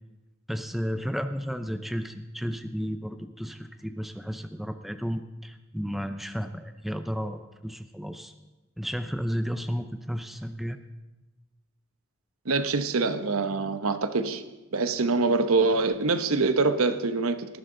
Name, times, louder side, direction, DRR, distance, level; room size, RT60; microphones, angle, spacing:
voice 1, 0.5-8.3 8.8-10.8, equal, ahead, 8 dB, 0.5 m, -33 dB
voice 2, 12.5-14.4 14.7-17.5, right 3 dB, 85° right, 10 dB, 1.0 m, -24 dB
19.0 x 13.0 x 3.8 m, 1.1 s
head